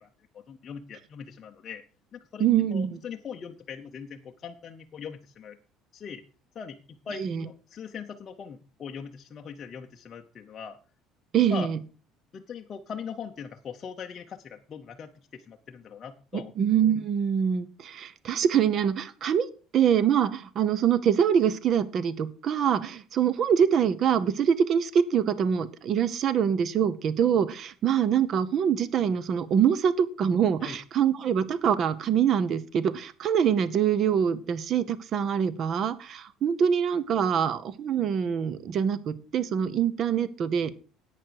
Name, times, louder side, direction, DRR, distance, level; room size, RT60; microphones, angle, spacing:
voice 1, 0.3-1.8 2.1-5.6 5.9-6.2 6.5-10.8 11.5-11.7 12.3-16.5 30.6-30.8, left 6 dB, 25° left, 3 dB, 0.7 m, -41 dB
voice 2, 2.4-3.0 7.2-7.4 11.3-11.8 16.3-19.5 19.7-40.7, right 8 dB, 35° right, 17 dB, 0.8 m, -24 dB
11.0 x 9.1 x 4.7 m, 0.35 s
cardioid pair, 180°, 0 cm